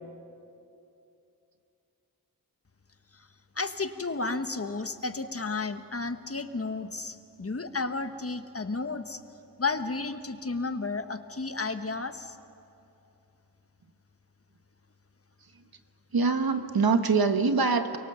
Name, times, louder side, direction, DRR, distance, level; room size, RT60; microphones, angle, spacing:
voice 1, 3.5-9.2 9.6-12.3, left 3 dB, 40° left, 9 dB, 1.3 m, -32 dB
voice 2, 16.1-18.0, right 4 dB, 70° right, 8 dB, 1.4 m, -24 dB
29.5 x 23.5 x 7.0 m, 2.8 s
wide cardioid pair, 60°, 37 cm